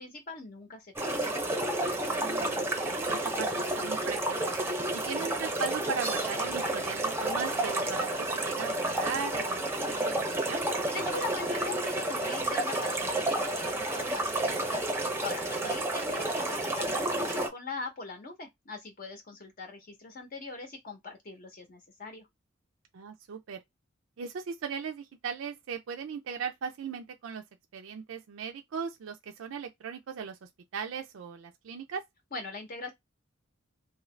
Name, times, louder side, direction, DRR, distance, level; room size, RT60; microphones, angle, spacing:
voice 1, 0.0-1.3 10.9-22.3 32.3-32.9, left 3 dB, 45° left, 0.7 m, -41 dB
sound 1, 1.0-17.5, right 1 dB, 10° right, 0.6 m, -31 dB
voice 2, 2.1-4.6 4.9-10.6 15.6-15.8 22.9-23.6 24.2-27.4 27.7-32.0, right 6 dB, 75° right, 0.4 m, -38 dB
2.7 x 2.5 x 3.1 m
head